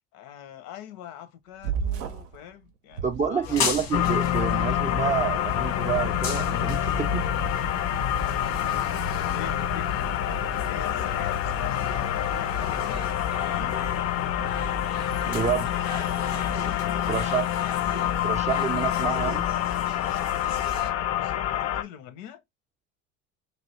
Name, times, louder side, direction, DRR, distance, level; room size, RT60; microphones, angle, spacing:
voice 1, 0.1-3.6 8.6-13.0 13.4-13.9 16.4-17.5 19.9-22.4, left 9 dB, 70° left, 0.8 m, -44 dB
sound 1, 1.6-2.4 2.9-3.8, right 7 dB, 85° right, 0.6 m, -31 dB
voice 2, 3.0-7.2 15.3-15.7 17.1-17.5 18.2-19.5, right 7 dB, 20° right, 0.3 m, -28 dB
sound 2, 3.4-20.9, left 3 dB, 85° left, 1.3 m, -36 dB
sound 3, 3.9-21.8, left 11 dB, 45° left, 0.4 m, -27 dB
3.1 x 2.6 x 3.0 m
hypercardioid pair, 75°, 36 cm